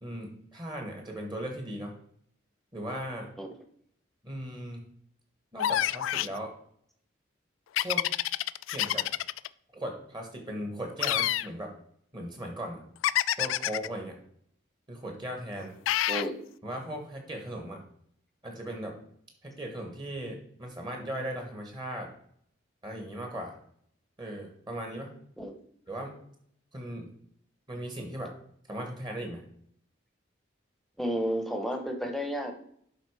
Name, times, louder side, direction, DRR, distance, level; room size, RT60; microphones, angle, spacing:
voice 1, 0.0-1.9 2.7-3.3 4.2-4.9 5.5-6.5 7.8-8.1 8.7-9.0 9.7-11.7 12.1-12.8 13.4-14.2 14.9-15.8 16.6-17.8 18.4-18.9 19.4-22.1 22.8-23.5 24.2-25.1 25.9-26.1 26.7-27.1 27.7-28.3 28.7-29.4, right 1 dB, 25° right, 2 dB, 1.4 m, -37 dB
sound 1, 5.6-6.4 7.8-9.5 11.0-11.5 13.0-13.9 15.9-16.3, left 12 dB, 90° left, 0.3 m, -27 dB
voice 2, 16.1-16.4 25.4-25.6 31.0-32.5, equal, ahead, 4 dB, 0.9 m, -31 dB
11.5 x 3.8 x 4.8 m, 0.66 s
head